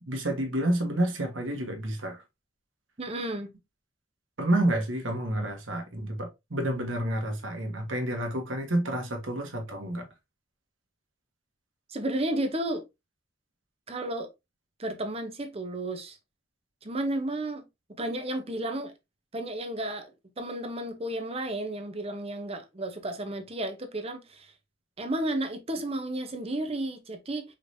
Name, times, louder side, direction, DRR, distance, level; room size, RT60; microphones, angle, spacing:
voice 1, 0.1-2.2 4.4-10.1, right 1 dB, 80° right, 1.3 m, -29 dB
voice 2, 3.0-3.5 11.9-12.8 13.9-14.3 14.8-16.2 16.8-17.6 18.0-18.9 19.3-20.1 20.4-24.5 25.0-27.4, right 1 dB, 30° right, 0.8 m, -32 dB
5.0 x 3.2 x 2.6 m
head